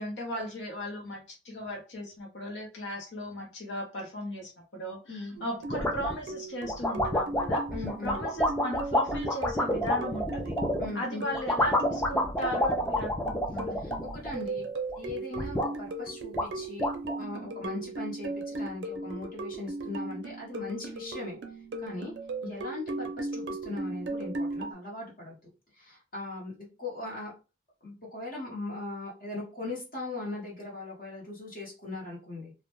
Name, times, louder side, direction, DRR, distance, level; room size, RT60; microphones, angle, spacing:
voice 1, 0.0-7.6 8.0-10.5 10.9-13.8 22.4-22.5, equal, 85° left, 0 dB, 0.7 m, -37 dB
sound 1, 5.4-24.7, right 2 dB, 75° right, 0.4 m, -38 dB
sound 2, 5.7-6.2 6.7-10.9 11.3-14.6 14.9-15.7 16.1-16.2 16.4-17.2, left 1 dB, 10° left, 0.3 m, -29 dB
voice 2, 7.7-8.2 10.8-11.2 13.8-14.7 15.0-16.9 17.2-21.4 21.8-22.1 22.4-25.4 25.7-27.3 27.8-32.5, left 2 dB, 50° left, -4 dB, 0.9 m, -39 dB
2.1 x 2.0 x 2.8 m, 0.31 s
head